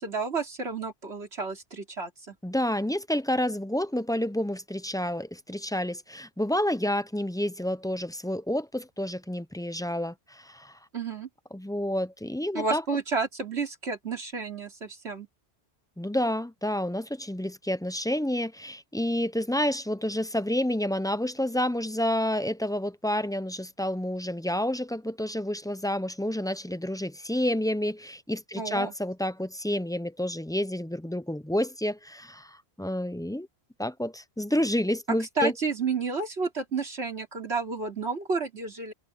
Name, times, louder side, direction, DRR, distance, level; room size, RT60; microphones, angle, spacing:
voice 1, 0.0-2.4 10.9-11.3 12.5-15.3 28.6-28.9 35.4-38.9, right 4 dB, 70° right, 3.8 m, -31 dB
voice 2, 2.4-10.8 11.5-12.8 16.0-33.5 33.8-35.5, left 1 dB, 5° left, 0.3 m, -29 dB
omnidirectional pair, 1.2 m